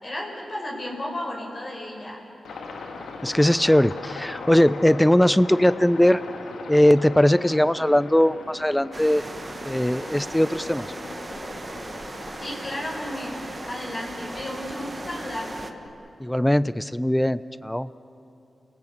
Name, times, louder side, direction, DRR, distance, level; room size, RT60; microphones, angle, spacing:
voice 1, 0.0-2.2 12.4-15.7, left 1 dB, 45° left, -2 dB, 5.6 m, -34 dB
Aircraft, 2.4-15.9, left 3 dB, 85° left, 1.9 m, -40 dB
voice 2, 3.2-6.2 6.7-9.2 9.6-10.9 16.2-17.9, left 1 dB, 10° left, 17 dB, 0.6 m, -20 dB
sound 1, 8.9-15.7, right 2 dB, 35° right, 1.4 m, -38 dB
28.5 x 18.0 x 7.9 m, 2.8 s
cardioid pair, 45°, 0 cm